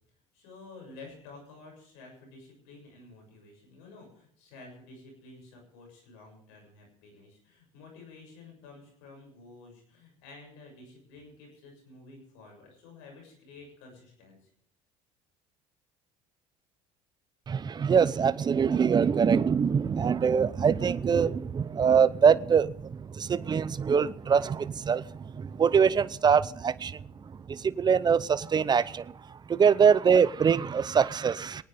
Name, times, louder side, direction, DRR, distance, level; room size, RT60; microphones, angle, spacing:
voice 1, 0.3-14.4, left 3 dB, 90° left, 7.1 m, -51 dB
voice 2, 17.5-27.0 27.5-29.1 29.5-31.6, right 6 dB, 25° right, 0.7 m, -24 dB
26.0 x 9.4 x 3.6 m
supercardioid pair, 105°, 15 cm